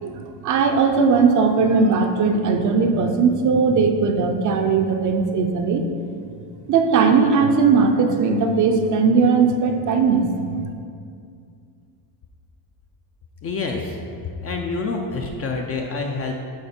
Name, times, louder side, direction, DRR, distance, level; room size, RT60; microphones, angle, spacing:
voice 1, 0.0-5.8 6.7-10.3, right 5 dB, 40° right, 5 dB, 0.5 m, -18 dB
voice 2, 13.4-14.0 14.4-16.3, left 3 dB, 30° left, 2 dB, 0.4 m, -27 dB
10.5 x 4.0 x 4.3 m, 2.4 s
cardioid pair, 160°, 50 cm